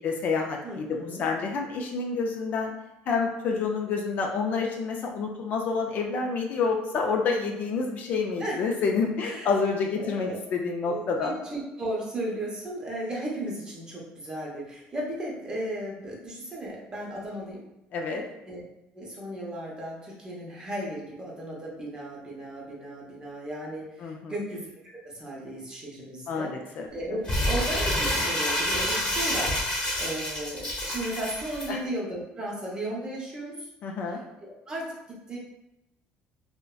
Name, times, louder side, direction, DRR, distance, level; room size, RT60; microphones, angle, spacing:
voice 1, 0.0-2.7 3.1-11.3 17.9-18.2 24.0-24.3 26.3-26.9 31.7-31.8 33.8-34.2, left 4 dB, 50° left, 1 dB, 0.3 m, -28 dB
voice 2, 0.6-1.3 8.4-8.6 9.2-9.5 10.0-10.4 10.8-17.6 18.4-18.6 18.9-24.7 25.0-29.6 30.0-33.7 34.1-35.4, right 1 dB, 20° right, -4 dB, 0.7 m, -35 dB
Crumpling crinkling, 27.2-31.7, left 1 dB, 25° left, 0.9 m, -28 dB
2.6 x 2.1 x 2.3 m, 0.89 s
cardioid pair, 120°, 4 cm